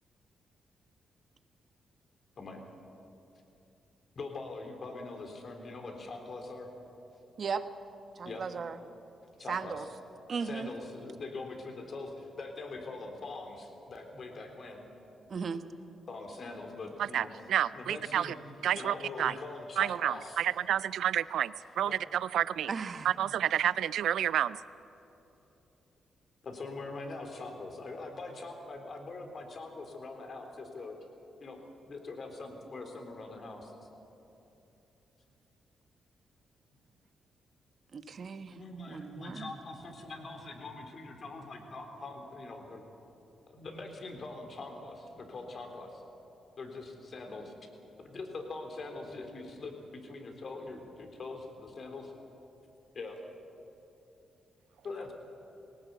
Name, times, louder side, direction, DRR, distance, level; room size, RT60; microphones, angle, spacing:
voice 1, 4.2-6.7 8.2-8.4 9.4-9.9 10.4-14.8 16.1-17.3 17.7-18.4 18.8-20.5 21.9-22.0 26.4-31.0 31.4-31.6 31.9-33.7 38.5-42.8 43.5-46.0 46.6-47.5 48.0-52.0 52.9-53.2 54.8-55.1, left 3 dB, 55° left, 4 dB, 3.6 m, -43 dB
voice 2, 8.2-8.8 9.5-9.8 10.3-10.7 15.3-15.6 22.7-23.1 37.9-38.6 38.9-39.5, right 5 dB, 55° right, 10 dB, 1.2 m, -36 dB
voice 3, 17.1-18.3 18.6-19.3 19.8-22.7 23.0-24.6, right 10 dB, 80° right, 18 dB, 0.4 m, -30 dB
19.5 x 17.5 x 8.3 m, 3.0 s
supercardioid pair, 65°, 0 cm